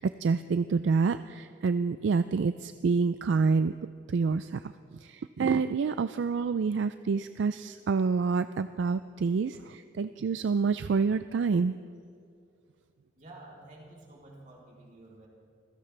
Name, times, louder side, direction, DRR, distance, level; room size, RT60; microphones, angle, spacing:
voice 1, 0.0-3.7 4.1-11.8, right 5 dB, 70° right, 12 dB, 0.4 m, -27 dB
voice 2, 13.1-15.3, right 2 dB, 45° right, -3 dB, 3.4 m, -50 dB
26.5 x 16.0 x 3.3 m, 2.3 s
head